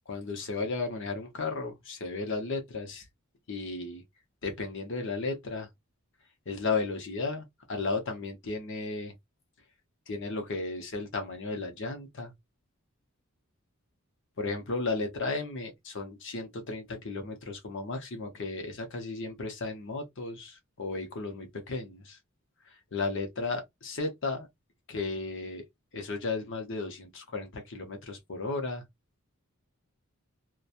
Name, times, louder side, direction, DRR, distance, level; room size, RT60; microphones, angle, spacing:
voice 1, 0.1-3.0 3.5-4.0 4.4-5.7 6.5-9.1 10.1-12.3 14.4-22.2 22.7-24.5 24.9-25.6 25.9-28.8, left 3 dB, 55° left, 0.8 m, -34 dB
2.9 x 2.2 x 2.4 m
head